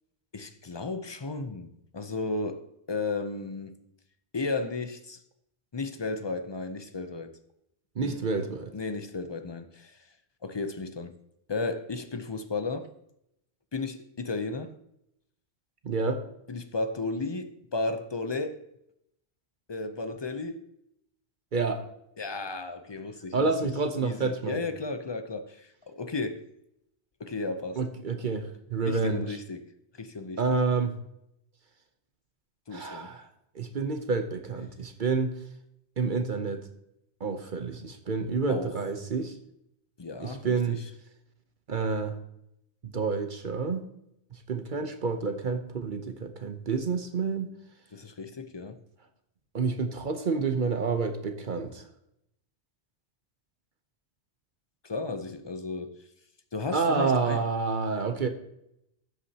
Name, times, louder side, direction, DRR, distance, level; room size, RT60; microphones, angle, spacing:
voice 1, 0.3-3.8 4.3-5.2 5.7-7.3 8.0-8.2 8.7-10.0 10.4-11.1 11.5-12.9 13.7-14.7 16.5-18.6 19.7-20.6 22.2-23.7 24.0-26.4 27.2-27.8 28.8-29.6 29.9-30.6 32.7-33.1 38.5-38.7 40.0-40.8 47.9-48.8 54.8-56.0 56.5-57.4, left 3 dB, 30° left, 0.5 m, -34 dB
voice 2, 8.0-8.7 15.8-16.2 21.5-21.8 23.3-24.6 27.8-29.4 30.4-31.0 32.7-33.3 33.5-35.4 36.0-36.7 37.2-39.4 40.2-40.8 41.7-42.2 42.8-43.9 44.3-47.5 49.5-51.8 56.7-58.3, right 4 dB, 50° right, 0.9 m, -29 dB
13.0 x 8.3 x 2.8 m
omnidirectional pair, 1.1 m